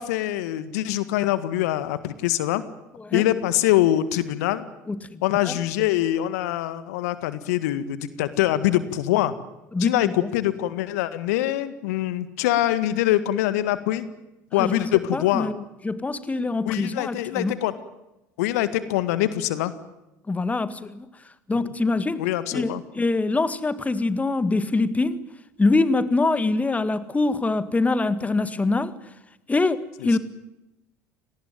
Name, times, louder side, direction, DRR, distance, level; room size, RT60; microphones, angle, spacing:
voice 1, 0.0-2.6 3.1-4.7 5.2-9.3 9.8-14.1 14.5-15.5 16.7-17.7 18.4-19.7 21.6-21.7 22.2-22.8 30.0-30.1, left 14 dB, 70° left, 1.8 m, -24 dB
voice 2, 4.9-5.5 9.7-10.3 14.6-17.5 20.3-21.1 21.5-22.2 22.5-25.2 25.6-28.9 29.5-30.2, left 3 dB, 15° left, 1.9 m, -24 dB
26.5 x 19.0 x 9.3 m
hypercardioid pair, 70°, 9 cm